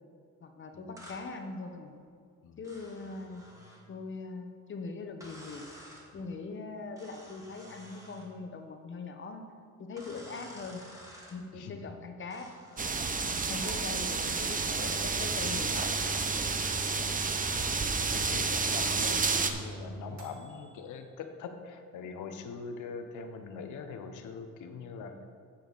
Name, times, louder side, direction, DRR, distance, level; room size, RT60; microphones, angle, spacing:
voice 1, 0.4-1.9 2.6-3.4 3.9-5.7 6.1-9.5 9.8-10.8 11.3-12.5 12.8-13.1 13.5-15.9 18.3-18.5, left 4 dB, 40° left, 5 dB, 1.0 m, -41 dB
sound 1, 1.0-1.2 2.6-3.9 5.2-6.1 7.0-8.3 10.0-11.4 12.3-13.2, equal, 10° right, 2.1 m, -51 dB
voice 2, 11.5-12.1 13.2-13.5 16.9-17.2 17.6-17.8 18.1-25.1, left 5 dB, 80° left, 7 dB, 0.9 m, -43 dB
sound 2, 12.8-19.5, right 4 dB, 25° right, 0.7 m, -30 dB
sound 3, 14.4-21.0, right 1 dB, 65° right, 1.5 m, -43 dB
10.5 x 7.0 x 4.0 m, 2.2 s
cardioid pair, 90°, 30 cm